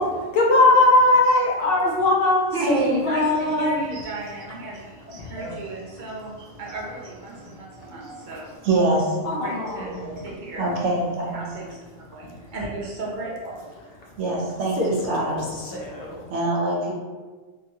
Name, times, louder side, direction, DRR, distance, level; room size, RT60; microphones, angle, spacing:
voice 1, 0.3-3.8 5.2-5.3 9.2-10.2 14.8-15.4 15.6-16.2, left 2 dB, 60° left, -2 dB, 0.7 m, -20 dB
voice 2, 2.5-6.3 6.6-8.5 9.4-10.7 11.3-13.6, right 1 dB, 50° right, -3 dB, 0.6 m, -34 dB
voice 3, 4.7-5.7 6.4-6.6 7.3-9.3 9.6-10.2 10.6-11.4 13.4-13.5 14.2-15.7 16.3-17.0, right 2 dB, 70° right, -2 dB, 1.0 m, -27 dB
2.8 x 2.8 x 2.7 m, 1.3 s
omnidirectional pair, 1.3 m